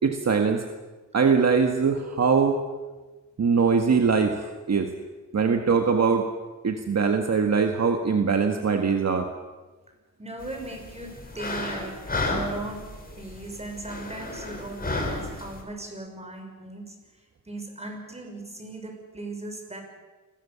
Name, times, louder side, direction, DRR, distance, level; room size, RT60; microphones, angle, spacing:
voice 1, 0.0-0.6 1.1-2.6 3.4-4.9 5.3-6.3 6.6-9.3, right 5 dB, 55° right, 4 dB, 1.8 m, -22 dB
voice 2, 10.2-16.9 17.5-19.8, right 2 dB, 20° right, 3 dB, 6.3 m, -38 dB
sound 1, 10.4-15.6, left 2 dB, 30° left, 5.3 m, -33 dB
29.5 x 21.5 x 7.2 m, 1.2 s
wide cardioid pair, 125°, 32 cm